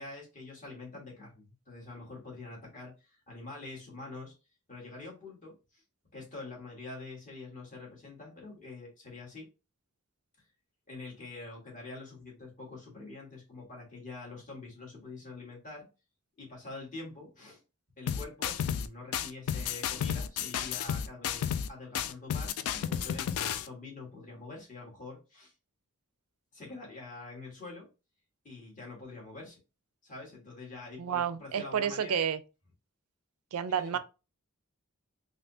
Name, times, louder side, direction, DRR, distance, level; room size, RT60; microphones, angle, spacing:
voice 1, 0.0-4.3 4.7-5.8 6.1-9.5 10.9-15.9 16.4-17.6 18.0-25.5 26.5-27.9 28.4-29.6 30.0-32.2 33.6-34.0, left 3 dB, 35° left, 1.4 m, -45 dB
sound 1, 18.1-18.9 19.1-21.7 21.9-23.7, left 8 dB, 90° left, 0.3 m, -32 dB
voice 2, 31.0-32.4 33.5-34.0, right 8 dB, 85° right, 0.4 m, -30 dB
3.4 x 2.7 x 2.6 m
head